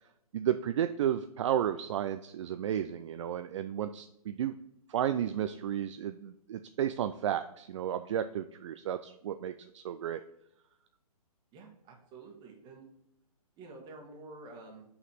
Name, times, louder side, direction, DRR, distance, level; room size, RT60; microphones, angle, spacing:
voice 1, 0.3-4.5 4.9-10.2, right 10 dB, 50° right, 10 dB, 0.4 m, -33 dB
voice 2, 11.5-12.8 13.6-14.8, right 3 dB, 25° right, 2 dB, 1.3 m, -49 dB
5.6 x 4.1 x 5.4 m, 0.83 s
hypercardioid pair, 130°, 20 cm